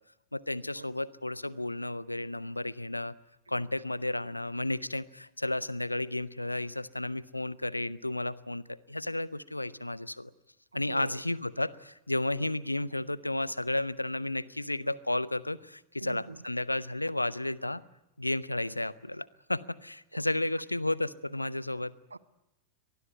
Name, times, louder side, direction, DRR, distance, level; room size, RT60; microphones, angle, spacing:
voice 1, 0.3-3.1 3.5-10.3 10.7-17.8 18.2-21.9, left 1 dB, 85° left, 0.8 m, -33 dB
voice 2, 10.7-11.2 12.4-12.5 16.0-16.4 20.1-20.2 22.1-22.2, right 3 dB, 80° right, 1.0 m, -43 dB
24.0 x 19.5 x 9.4 m
figure-of-eight pair, 90°, 0 cm